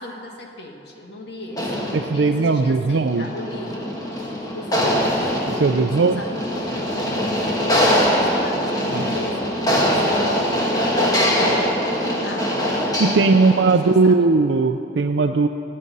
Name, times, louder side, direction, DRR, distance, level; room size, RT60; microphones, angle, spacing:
voice 1, 0.0-3.9 4.5-6.7 7.7-11.7 12.2-12.5 13.2-14.4, left 1 dB, 70° left, 1 dB, 2.0 m, -37 dB
sound 1, 1.5-13.9, equal, 20° left, 2.1 m, -22 dB
voice 2, 1.9-3.3 5.5-6.2 8.9-9.0 12.5-12.6 13.0-15.5, right 3 dB, 80° right, 5 dB, 0.5 m, -18 dB
23.5 x 8.8 x 5.4 m, 2.7 s
head